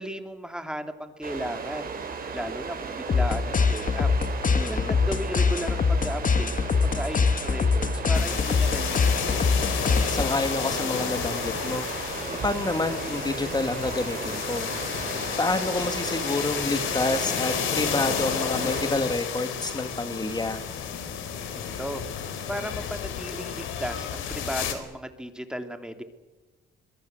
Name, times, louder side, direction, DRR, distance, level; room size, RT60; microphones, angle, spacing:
voice 1, 0.0-1.9 2.3-4.1 4.6-6.5 6.8-9.4 21.5-22.0 22.5-26.0, equal, 5° right, 7 dB, 2.7 m, -35 dB
sound 1, 1.2-18.9, right 5 dB, 45° right, 6.0 m, -36 dB
sound 2, 3.1-10.5, left 5 dB, 40° left, 1.7 m, -24 dB
voice 2, 4.6-5.0 9.9-14.7 15.0-20.6, left 2 dB, 20° left, 8 dB, 2.4 m, -29 dB
sound 3, 8.1-24.7, left 8 dB, 85° left, 4.1 m, -31 dB
26.5 x 22.5 x 8.0 m, 1.2 s
cardioid pair, 90°, 20 cm